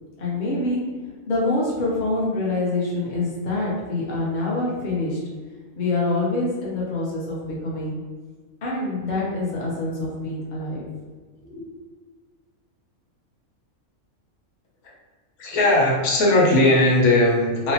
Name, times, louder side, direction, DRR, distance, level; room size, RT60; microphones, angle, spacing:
voice 1, 0.2-0.8 1.3-5.2 5.8-8.0 8.6-10.9 11.5-11.6, left 2 dB, 40° left, -5 dB, 0.7 m, -25 dB
voice 2, 15.4-17.7, left 2 dB, 90° left, -3 dB, 1.2 m, -18 dB
3.0 x 2.1 x 2.8 m, 1.5 s
omnidirectional pair, 1.5 m